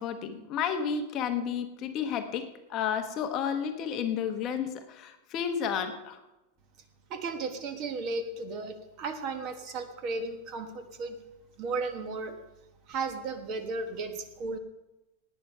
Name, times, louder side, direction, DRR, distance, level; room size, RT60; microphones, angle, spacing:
voice 1, 0.0-6.2 8.3-8.4, left 7 dB, 30° left, 6 dB, 1.1 m, -32 dB
voice 2, 7.1-11.2 11.6-12.4 12.9-14.6, right 4 dB, 30° right, 8 dB, 1.2 m, -35 dB
17.5 x 9.3 x 5.5 m, 1.0 s
supercardioid pair, 170°, 0 cm